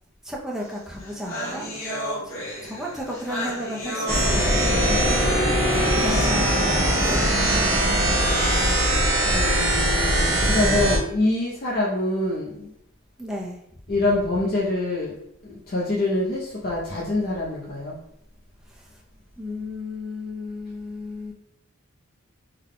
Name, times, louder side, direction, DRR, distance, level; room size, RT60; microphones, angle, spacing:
voice 1, 0.2-1.7 2.6-5.2 5.9-7.4 13.2-13.6 19.4-21.3, left 1 dB, ahead, -3 dB, 0.5 m, -33 dB
sound 1, 0.7-0.8 1.0-8.6, left 1 dB, 65° left, 1.1 m, -31 dB
sound 2, 4.1-11.0, right 1 dB, 55° right, 1.2 m, -21 dB
voice 2, 4.6-5.3 8.0-8.7 9.2-12.7 13.9-15.1 15.4-18.0, left 2 dB, 45° left, -6 dB, 0.7 m, -26 dB
3.7 x 2.2 x 3.6 m, 0.74 s
head